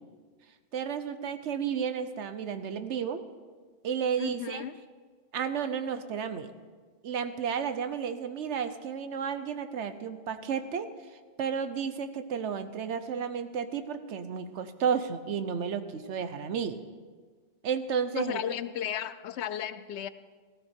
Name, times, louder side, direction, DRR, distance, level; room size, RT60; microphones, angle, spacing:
voice 1, 0.7-3.2 3.8-4.6 5.3-6.5 7.0-10.9 11.4-16.8 17.6-18.4, right 7 dB, 80° right, 11 dB, 1.1 m, -32 dB
voice 2, 4.2-4.7 18.1-20.1, left 9 dB, 75° left, 14 dB, 0.9 m, -34 dB
15.5 x 14.0 x 4.4 m, 1.5 s
omnidirectional pair, 1.2 m